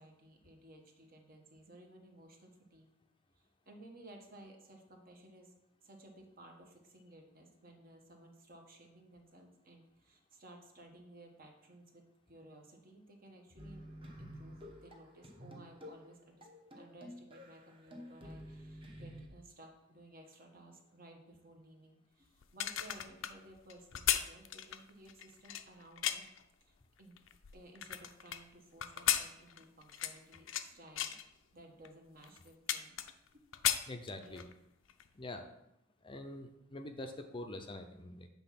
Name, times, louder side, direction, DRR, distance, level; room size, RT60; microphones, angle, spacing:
voice 1, 0.0-2.9 3.3-5.5 5.8-16.5 16.8-26.3 26.6-27.2 27.5-31.1 31.5-33.0 33.3-33.5 34.1-34.5, right 1 dB, 45° right, 2 dB, 1.2 m, -57 dB
sound 1, 13.6-19.3, equal, 25° right, 1.1 m, -51 dB
sound 2, 22.4-26.4 27.0-28.4 28.8-30.7 31.0-31.2 31.8-31.9 32.2-33.3 33.5-34.5 34.9-35.1, left 11 dB, 75° left, 0.5 m, -35 dB
voice 2, 33.9-34.4 35.2-35.5 36.0-38.3, left 2 dB, 25° left, 5 dB, 0.5 m, -45 dB
7.8 x 3.6 x 5.8 m, 0.84 s
head